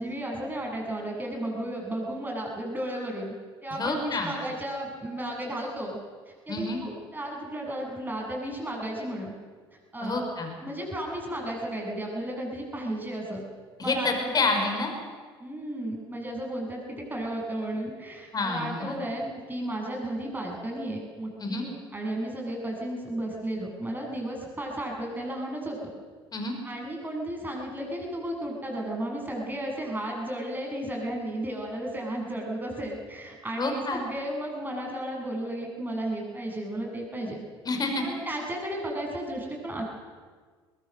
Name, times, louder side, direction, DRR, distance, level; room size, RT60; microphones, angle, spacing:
voice 1, 0.0-3.3 3.6-6.0 6.5-9.3 9.9-10.2 10.6-13.4 13.8-14.3 15.4-25.8 26.6-37.4 38.0-40.0, right 1 dB, 15° right, 0 dB, 7.6 m, -34 dB
voice 2, 3.7-4.3 6.5-6.8 10.0-10.6 13.8-14.9 18.3-19.0 21.4-21.7 26.3-26.6 33.6-34.0 37.7-38.0, left 3 dB, 30° left, 4 dB, 5.4 m, -28 dB
22.5 x 22.0 x 6.7 m, 1.5 s
figure-of-eight pair, 60°, 13 cm